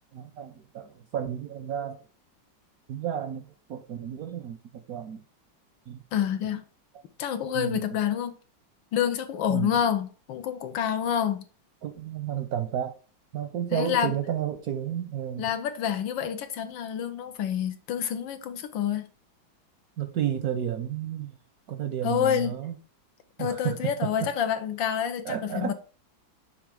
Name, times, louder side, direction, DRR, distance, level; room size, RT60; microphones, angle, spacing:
voice 1, 0.1-2.0 2.9-5.2 5.9-6.0 7.5-8.0 9.5-9.8 11.8-12.9 13.3-15.4 20.0-21.4 21.7-22.8 23.4-24.3 25.2-25.7, right 10 dB, 65° right, 0.9 m, -32 dB
voice 2, 6.1-6.6 7.2-8.3 8.9-11.4 13.7-14.1 15.4-19.1 22.0-22.5 23.4-25.7, left 9 dB, 75° left, 1.5 m, -28 dB
7.0 x 3.3 x 5.1 m
omnidirectional pair, 2.1 m